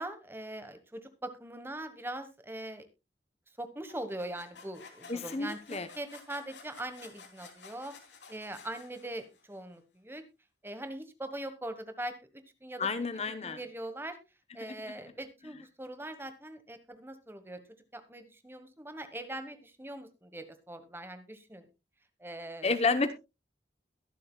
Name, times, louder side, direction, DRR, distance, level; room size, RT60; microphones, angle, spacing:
voice 1, 0.0-2.9 3.6-7.9 8.3-10.2 10.6-12.9 13.2-14.2 14.5-17.6 17.9-21.7 22.2-22.7, right 1 dB, 10° right, 10 dB, 1.2 m, -42 dB
sound 1, 3.9-9.6, left 5 dB, 75° left, 2.9 m, -53 dB
voice 2, 5.1-5.9 12.8-13.6 22.6-23.1, left 4 dB, 35° left, 11 dB, 0.8 m, -30 dB
22.0 x 7.7 x 2.3 m, 0.25 s
head